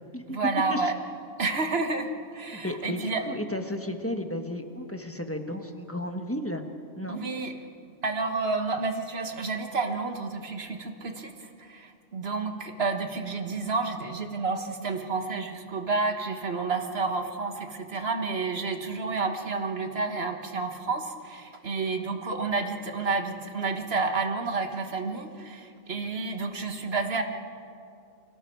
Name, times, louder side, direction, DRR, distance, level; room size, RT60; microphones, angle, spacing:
voice 1, 0.3-1.0 1.4-3.2 7.1-7.5 8.0-27.2, right 4 dB, 50° right, 5 dB, 1.6 m, -30 dB
voice 2, 2.5-6.6 7.0-7.2, left 1 dB, 10° left, 5 dB, 1.2 m, -33 dB
29.5 x 23.0 x 4.6 m, 2.5 s
omnidirectional pair, 1.4 m